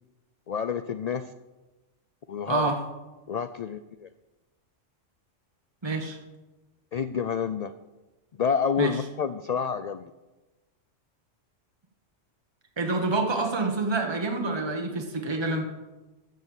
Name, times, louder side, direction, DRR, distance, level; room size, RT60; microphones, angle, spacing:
voice 1, 0.5-1.3 2.3-2.7 3.3-4.1 6.9-7.7 8.4-10.1, left 6 dB, 75° left, 11 dB, 0.3 m, -28 dB
voice 2, 2.5-2.8 5.8-6.2 8.8-9.0 12.8-15.7, right 3 dB, 20° right, 3 dB, 1.3 m, -27 dB
13.5 x 6.7 x 7.1 m, 1.1 s
omnidirectional pair, 1.2 m